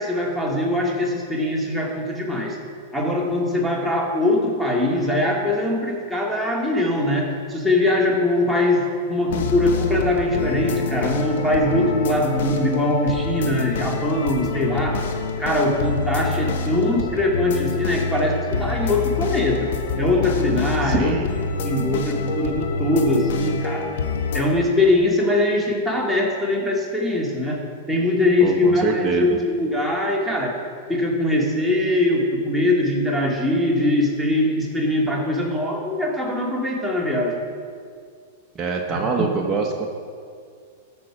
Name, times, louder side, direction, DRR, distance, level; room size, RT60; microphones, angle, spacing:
voice 1, 0.0-2.6 2.9-15.0 15.4-19.7 20.0-21.2 21.6-23.9 24.3-27.6 27.9-30.5 30.9-37.4 38.9-39.0, left 1 dB, ahead, -3 dB, 2.2 m, -22 dB
sound 1, 9.3-24.4, left 5 dB, 70° left, 1.3 m, -27 dB
voice 2, 20.8-21.3 28.4-29.4 38.5-39.9, right 5 dB, 20° right, 0 dB, 1.1 m, -24 dB
14.0 x 6.3 x 6.1 m, 2.2 s
hypercardioid pair, 120°, 0 cm